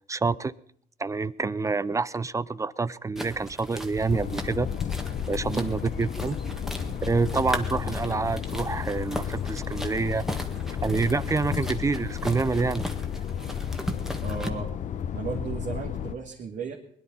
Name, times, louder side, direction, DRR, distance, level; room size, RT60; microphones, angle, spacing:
voice 1, 0.1-0.5 1.0-4.7 5.3-6.4 7.0-10.2 10.8-12.8, right 4 dB, 20° right, 0.5 m, -27 dB
sound 1, 3.2-14.5, equal, ahead, 1.7 m, -38 dB
sound 2, 4.1-16.2, left 8 dB, 50° left, 0.9 m, -32 dB
voice 2, 5.5-5.9 14.2-14.7 15.1-16.7, right 5 dB, 50° right, 2.3 m, -35 dB
21.0 x 10.5 x 5.5 m
cardioid pair, 110°, 17 cm